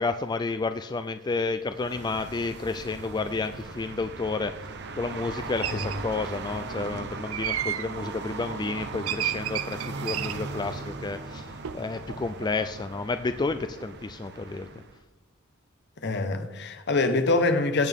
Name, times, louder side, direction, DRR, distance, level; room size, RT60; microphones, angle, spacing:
voice 1, 0.0-4.6 5.0-14.7, left 3 dB, 20° left, 0.3 m, -31 dB
sound 1, 1.7-15.0, right 3 dB, 55° right, 0.9 m, -38 dB
sound 2, 5.6-6.0 7.3-7.9 9.1-10.4 11.6-11.8 12.1-12.5, right 11 dB, 90° right, 0.6 m, -31 dB
voice 2, 16.0-17.9, left 3 dB, 55° left, 1.1 m, -24 dB
16.5 x 8.5 x 3.6 m
head